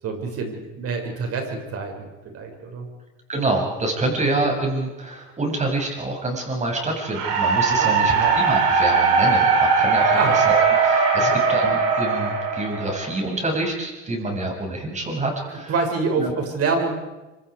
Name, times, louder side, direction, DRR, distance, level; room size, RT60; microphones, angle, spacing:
voice 1, 0.0-2.9 7.8-8.4 10.1-10.3 11.2-11.4 15.7-17.0, right 4 dB, 45° right, 3 dB, 6.8 m, -26 dB
voice 2, 3.3-15.7 16.2-16.3, right 2 dB, 20° right, 2 dB, 7.6 m, -27 dB
sound 1, 7.1-13.3, right 5 dB, 70° right, 7.1 m, -19 dB
26.0 x 25.5 x 5.1 m, 1.1 s
supercardioid pair, 95°, 33 cm